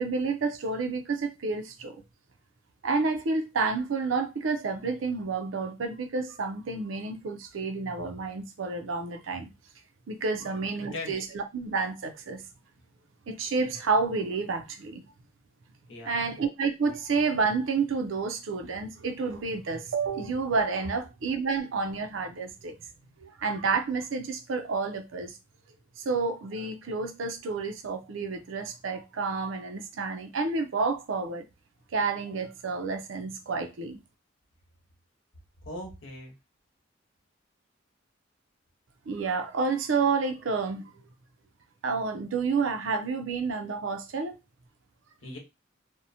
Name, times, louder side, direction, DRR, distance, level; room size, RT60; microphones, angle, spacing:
voice 1, 0.0-2.0 2.8-9.5 10.1-12.4 13.3-15.0 16.1-22.8 23.2-25.4 26.0-31.4 31.9-34.0 39.1-40.9 41.8-44.3, right 4 dB, 90° right, 0.5 m, -30 dB
voice 2, 10.4-11.1 15.9-16.3 35.6-36.3 45.2-45.4, left 2 dB, 80° left, 1.0 m, -40 dB
2.7 x 2.1 x 2.6 m
head